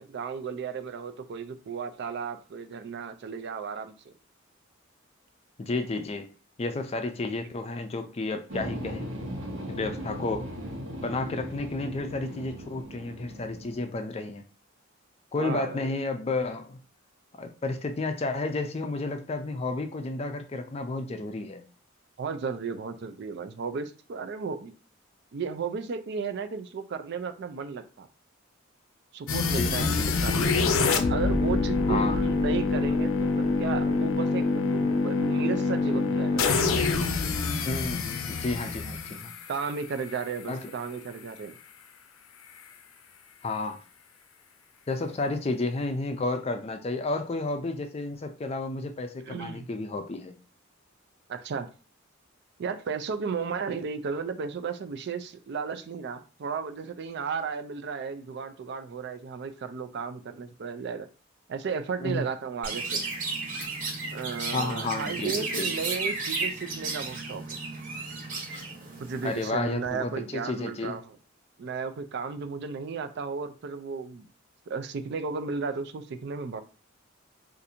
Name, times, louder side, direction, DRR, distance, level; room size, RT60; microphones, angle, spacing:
voice 1, 0.0-4.1 7.4-7.5 15.3-16.0 22.2-24.7 25.3-28.1 29.1-30.7 31.1-36.5 39.5-41.6 49.2-49.7 51.3-51.7 52.6-61.1 61.5-63.0 64.1-67.6 69.0-71.1 71.6-74.3 74.7-76.6, right 5 dB, 55° right, 0.4 m, -34 dB
voice 2, 5.6-6.3 6.6-9.1 9.7-10.5 11.0-14.4 15.3-16.8 17.4-21.7 29.5-30.4 31.9-32.2 37.7-39.3 40.5-40.7 43.4-43.8 44.9-50.4 62.0-62.2 64.5-65.7 69.2-71.0, left 2 dB, 30° left, 0.4 m, -31 dB
sound 1, 8.5-13.9, equal, 80° right, 1.0 m, -38 dB
sound 2, 29.3-40.2, left 3 dB, 85° left, 0.5 m, -26 dB
Chirp tweet, 62.6-69.5, right 3 dB, 40° right, 1.0 m, -33 dB
2.6 x 2.5 x 4.1 m
head